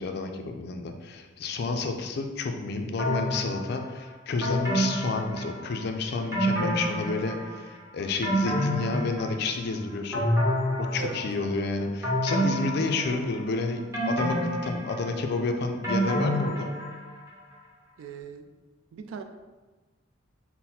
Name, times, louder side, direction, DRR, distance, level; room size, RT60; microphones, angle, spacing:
voice 1, 0.0-10.3 10.9-16.7, left 3 dB, 55° left, 5 dB, 0.3 m, -30 dB
sound 1, 3.0-3.8 4.4-5.9 6.3-7.6 8.0-9.7 10.1-11.5 12.0-13.5 13.9-17.2 17.5-17.6, equal, 15° right, 1.1 m, -28 dB
voice 2, 18.0-18.5 18.9-19.2, right 5 dB, 80° right, 7 dB, 0.3 m, -38 dB
4.0 x 2.1 x 4.1 m, 1.2 s
head